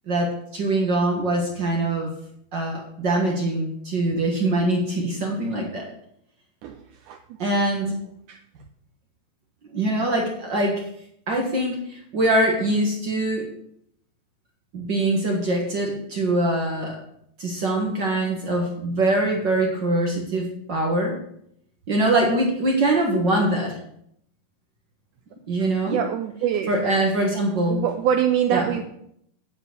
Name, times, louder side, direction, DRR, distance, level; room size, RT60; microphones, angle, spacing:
voice 1, 0.1-2.1 2.5-5.9 7.4-7.9 9.7-10.9 11.3-13.5 14.7-17.0 17.4-21.2 21.9-23.8 25.5-26.0 26.7-27.8 28.5-28.7, right 1 dB, 55° right, 0 dB, 1.2 m, -23 dB
voice 2, 6.6-7.2 7.9-8.0 8.3-8.4 25.9-26.7 27.7-28.8, right 9 dB, 90° right, 6 dB, 1.7 m, -24 dB
9.8 x 5.1 x 8.0 m, 0.72 s
omnidirectional pair, 4.3 m